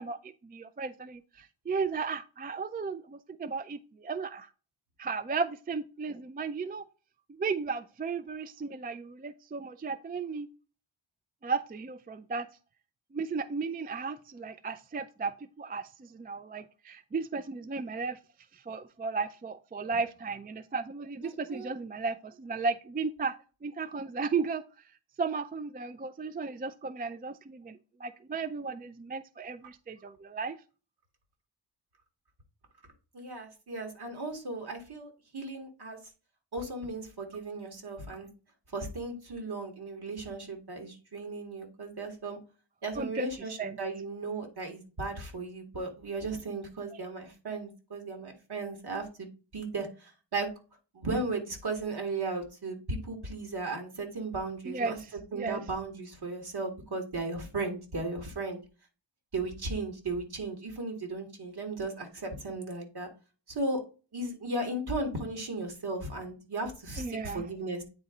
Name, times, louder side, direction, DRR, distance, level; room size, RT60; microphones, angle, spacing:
voice 1, 0.0-4.5 5.0-6.8 7.4-10.5 11.4-12.5 13.1-18.2 18.5-23.4 23.6-24.6 25.2-30.6 43.0-43.3 43.6-43.8 54.7-54.9 55.3-55.6 67.0-67.5, right 4 dB, 25° right, 12 dB, 0.3 m, -35 dB
voice 2, 21.2-21.7 33.1-36.0 36.5-38.3 38.7-42.4 42.8-50.5 50.9-55.0 55.3-58.6 59.3-63.1 63.5-63.8 64.1-67.8, right 2 dB, 60° right, 3 dB, 2.1 m, -36 dB
9.0 x 4.1 x 3.8 m, 0.34 s
wide cardioid pair, 115°, 43 cm